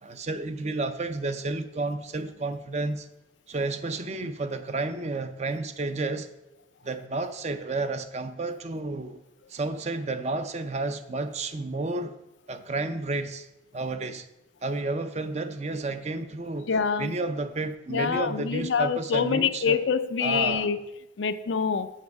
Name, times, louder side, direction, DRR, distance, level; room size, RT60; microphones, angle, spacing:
voice 1, 0.0-3.1 3.5-6.3 6.8-9.2 9.5-12.2 12.5-13.5 13.7-14.3 14.6-16.7 17.0-19.8 20.2-20.7, right 2 dB, 40° right, 0.5 m, -31 dB
voice 2, 16.7-17.1 17.9-20.8 21.2-21.9, left 6 dB, 85° left, 0.5 m, -26 dB
7.4 x 7.2 x 4.7 m
head